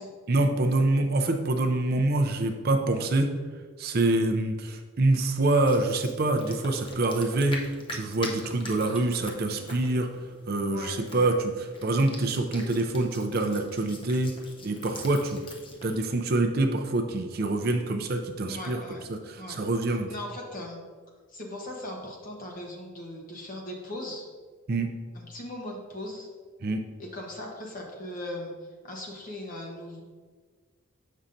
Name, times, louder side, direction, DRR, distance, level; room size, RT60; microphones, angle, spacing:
voice 1, 0.3-3.3 3.8-10.1 10.5-14.3 14.6-15.4 15.8-18.8 19.1-20.1 24.7-24.9 26.6-26.8, right 2 dB, 45° right, 5 dB, 0.4 m, -26 dB
sound 1, 5.6-16.0, left 2 dB, 25° left, 0.6 m, -44 dB
voice 2, 10.7-11.3 18.5-19.1 19.4-19.6 19.9-20.8 21.3-24.2 25.1-26.3 27.0-28.5 28.8-30.0, left 1 dB, 40° left, -1 dB, 1.0 m, -39 dB
7.1 x 5.5 x 2.6 m, 1.5 s
head